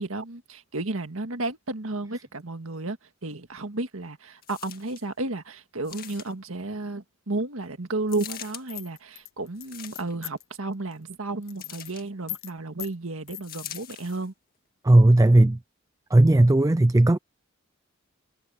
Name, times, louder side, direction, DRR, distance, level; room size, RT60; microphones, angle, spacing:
voice 1, 0.0-3.0 3.2-14.3, right 2 dB, 75° right, 1.8 m, -32 dB
sound 1, 4.4-5.1 5.8-6.5 8.1-8.6 9.6-10.3 11.6-12.1 13.4-14.3 15.0-15.1, left 11 dB, 45° left, 1.9 m, -42 dB
sound 2, 8.7-10.5 10.9-11.2 11.4-11.9 12.3-12.5 12.8-12.9 13.3-13.8, left 17 dB, 70° left, 0.9 m, -38 dB
voice 2, 14.8-15.6 16.1-17.2, right 1 dB, 15° right, 0.4 m, -16 dB
head